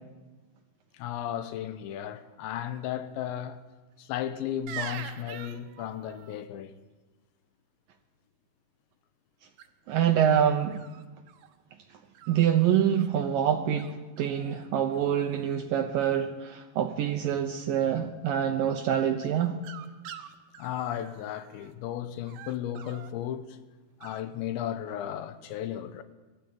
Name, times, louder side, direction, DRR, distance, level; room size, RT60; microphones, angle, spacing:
voice 1, 0.9-3.6 4.0-6.8 20.6-23.6 24.0-26.0, left 10 dB, 75° left, 3.1 m, -35 dB
sound 1, 4.7-6.4 9.6-10.0 10.7-11.6 12.1-13.1 13.8-13.9 14.2-14.7 14.9-15.5 19.2-21.7 22.2-23.1 24.0-24.2, right 9 dB, 65° right, 2.6 m, -44 dB
voice 2, 9.9-10.8 12.3-19.6, right 9 dB, 85° right, 1.9 m, -26 dB
21.5 x 14.0 x 8.7 m
omnidirectional pair, 5.5 m